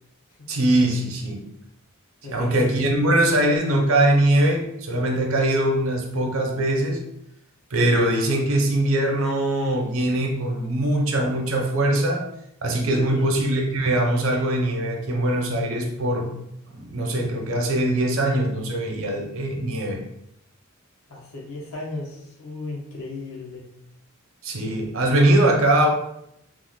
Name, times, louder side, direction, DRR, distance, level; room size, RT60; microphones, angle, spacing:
voice 1, 0.5-1.5 2.3-7.0 7.7-12.2 12.6-16.3 16.7-20.0 24.4-25.9, right 1 dB, 70° right, 2 dB, 0.7 m, -22 dB
voice 2, 2.2-2.6 12.9-13.3 21.1-23.6, left 2 dB, 80° left, -3 dB, 0.7 m, -35 dB
3.1 x 2.1 x 3.5 m, 0.78 s
head